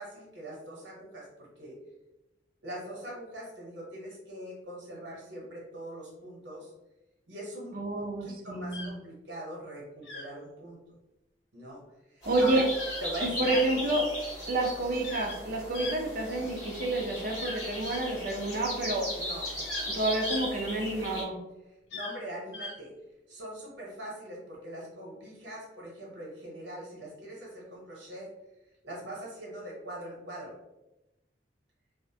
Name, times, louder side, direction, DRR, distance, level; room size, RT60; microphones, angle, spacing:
voice 1, 0.0-1.7 2.6-6.7 7.3-10.8 11.5-11.8 12.1-12.6 13.0-13.8 19.2-19.5 21.9-22.9 23.3-28.3 28.8-30.5, right 1 dB, 75° right, -4 dB, 1.0 m, -42 dB
voice 2, 7.7-8.9 12.3-12.7 13.2-14.0 14.5-19.1 19.9-21.4, right 2 dB, 50° right, 1 dB, 0.5 m, -29 dB
sound 1, 8.7-8.9 10.0-10.3 12.7-13.0 13.4-13.6 15.0-15.4 15.7-16.6 17.4-18.0 19.4-19.9 20.2-20.4 21.9-22.2 22.5-22.8, left 3 dB, 75° left, 0.7 m, -39 dB
sound 2, 12.2-21.2, left 1 dB, 20° left, 0.9 m, -37 dB
2.5 x 2.1 x 2.7 m, 0.97 s
head